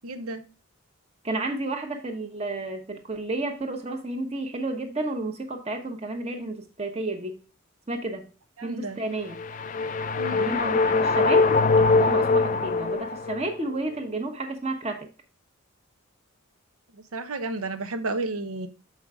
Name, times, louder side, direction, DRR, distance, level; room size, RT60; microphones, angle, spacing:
voice 1, 0.0-0.4 8.6-9.0 10.2-10.6 16.9-18.7, right 2 dB, 85° right, 9 dB, 0.8 m, -32 dB
voice 2, 1.2-7.4 7.9-8.3 8.6-9.4 10.3-15.1, right 2 dB, 30° right, 5 dB, 1.0 m, -31 dB
sound 1, 9.2-13.6, left 3 dB, 35° left, 0.4 m, -22 dB
6.5 x 5.5 x 3.5 m, 0.34 s
head